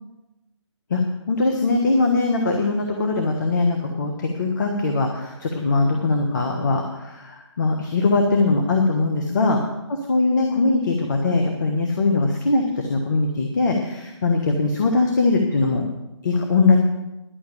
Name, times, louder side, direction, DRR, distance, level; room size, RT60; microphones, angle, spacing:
voice 1, 1.3-9.6 9.9-15.8 16.2-16.8, left 3 dB, 40° left, 2 dB, 1.4 m, -21 dB
11.5 x 6.4 x 8.5 m, 0.96 s
figure-of-eight pair, 150°, 16 cm